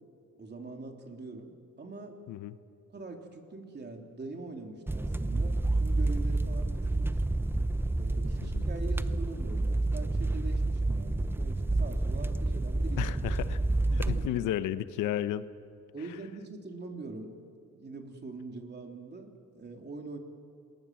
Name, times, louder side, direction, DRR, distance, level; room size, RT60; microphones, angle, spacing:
voice 1, 0.4-2.2 2.9-7.2 8.0-13.2 13.9-14.5 15.9-17.3 17.7-20.2, right 3 dB, 35° right, 3 dB, 3.5 m, -43 dB
sound 1, 4.9-14.3, right 2 dB, 5° right, 0.7 m, -29 dB
voice 2, 13.0-13.6 14.1-15.4, left 12 dB, 85° left, 13 dB, 1.0 m, -32 dB
27.5 x 20.0 x 7.8 m, 2.4 s
cardioid pair, 90°, 30 cm